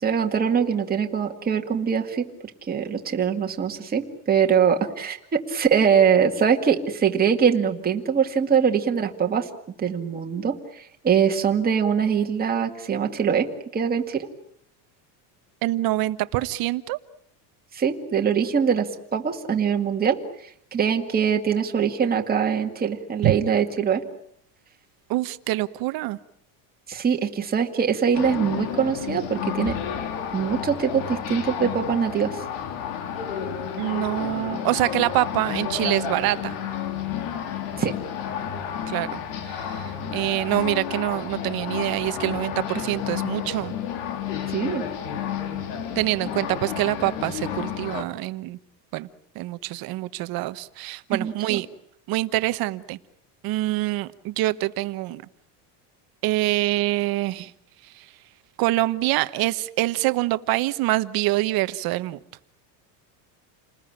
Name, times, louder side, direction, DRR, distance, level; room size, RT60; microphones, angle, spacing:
voice 1, 0.0-2.3 2.7-9.5 9.8-14.3 17.7-24.0 26.9-29.8 30.3-32.4 37.8-37.9 44.5-44.9 51.1-51.6, right 7 dB, 20° right, 3 dB, 2.1 m, -23 dB
voice 2, 15.6-17.0 23.2-23.3 25.1-26.2 33.8-36.6 38.9-43.7 45.9-48.6 48.9-49.1 49.3-51.7 52.1-53.0 53.4-55.2 56.2-57.5 57.9-58.1 58.6-62.2, right 17 dB, 45° right, 14 dB, 1.1 m, -25 dB
sound 1, 28.1-48.0, left 8 dB, 75° left, 3.3 m, -31 dB
29.0 x 20.0 x 8.9 m, 0.70 s
cardioid pair, 160°, 49 cm